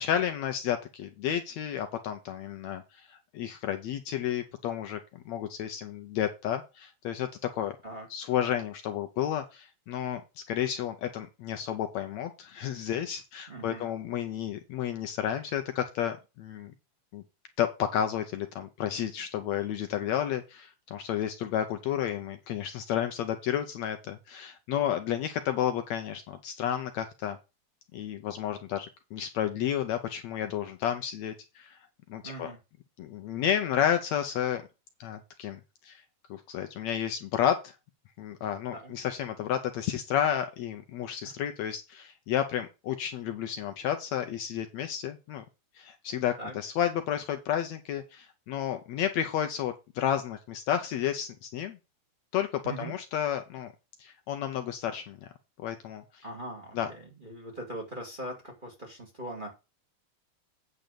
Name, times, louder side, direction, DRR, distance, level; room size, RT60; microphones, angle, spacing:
voice 1, 0.0-7.8 8.1-16.7 17.1-17.2 17.6-27.4 27.9-31.8 32.1-32.5 33.0-34.7 35.0-36.0 36.3-37.7 38.2-45.4 45.8-51.8 52.3-53.7 54.0-55.2 55.6-56.2 56.7-56.9, left 10 dB, 75° left, 7 dB, 1.9 m, -31 dB
voice 2, 13.5-13.9 32.2-32.6 38.7-38.9 41.2-41.3 46.4-46.5 52.6-52.9 56.2-59.5, right 1 dB, 15° right, 0 dB, 2.1 m, -40 dB
9.0 x 3.9 x 6.8 m, 0.27 s
omnidirectional pair, 3.6 m